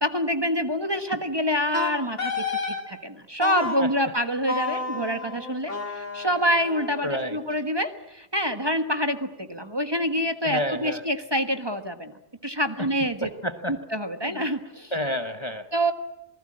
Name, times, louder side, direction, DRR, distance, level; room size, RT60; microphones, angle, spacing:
voice 1, 0.0-12.1 12.4-13.3 13.7-14.9 15.7-15.9, equal, 20° right, 7 dB, 1.4 m, -26 dB
Wind instrument woodwind instrument, 1.7-2.8 3.4-3.9 4.5-7.5, left 4 dB, 90° left, 3.1 m, -31 dB
voice 2, 7.0-7.4 10.4-11.0 12.8-12.9 13.2-13.8 14.2-14.4 14.9-15.7, equal, 25° left, 7 dB, 1.1 m, -29 dB
27.0 x 19.5 x 8.7 m, 0.90 s
omnidirectional pair, 1.2 m